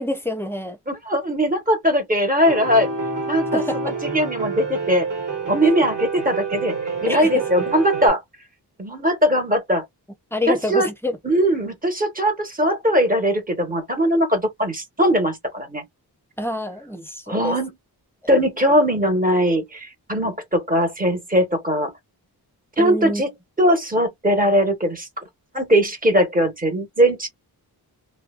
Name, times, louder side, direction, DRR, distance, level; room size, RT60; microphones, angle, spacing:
voice 1, 0.0-0.8 3.5-3.9 7.0-7.4 10.3-11.2 16.4-17.6 22.8-23.2, left 1 dB, 5° left, 0.5 m, -27 dB
voice 2, 0.9-2.9 3.3-5.1 5.5-6.7 7.0-8.2 8.8-9.8 10.5-10.9 11.2-15.8 17.3-17.7 18.3-21.9 22.8-23.3 23.6-25.1 25.5-27.3, equal, 20° right, 1.1 m, -20 dB
Piano, 2.5-8.1, right 4 dB, 50° right, 1.3 m, -28 dB
2.6 x 2.1 x 2.4 m
wide cardioid pair, 105°, 40 cm